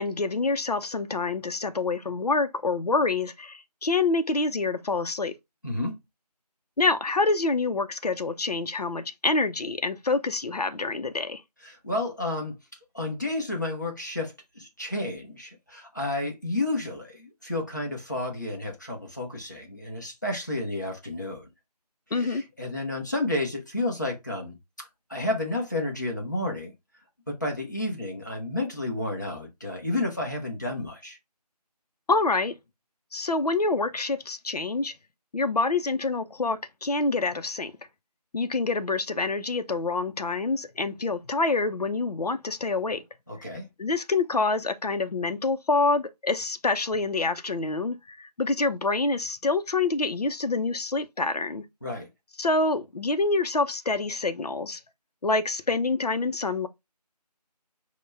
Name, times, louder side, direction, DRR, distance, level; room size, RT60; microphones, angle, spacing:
voice 1, 0.0-5.3 6.8-11.4 22.1-22.4 32.1-32.5 33.1-34.9 35.3-37.7 38.3-43.0 43.8-51.6 52.4-54.8 55.2-56.7, left 3 dB, 65° left, 0.6 m, -26 dB
voice 2, 5.6-6.0 11.6-12.6 12.9-21.5 22.1-26.7 27.3-31.2 43.3-43.7 51.8-52.1, left 2 dB, 25° left, 0.8 m, -31 dB
4.7 x 2.2 x 3.3 m
figure-of-eight pair, 175°, 21 cm